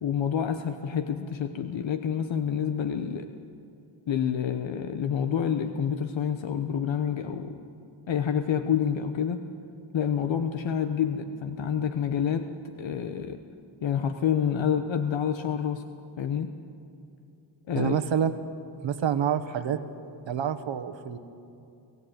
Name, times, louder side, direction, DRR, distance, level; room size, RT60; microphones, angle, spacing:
voice 1, 0.0-3.3 4.1-7.6 8.1-9.4 9.9-12.5 12.8-13.4 13.8-15.8 16.2-16.5 17.7-18.0, left 8 dB, 80° left, 7 dB, 1.0 m, -28 dB
voice 2, 17.7-18.3 18.8-19.8 20.3-21.2, right 8 dB, 80° right, 11 dB, 1.3 m, -27 dB
24.5 x 14.5 x 9.3 m, 2.6 s
cardioid pair, 90°, 45 cm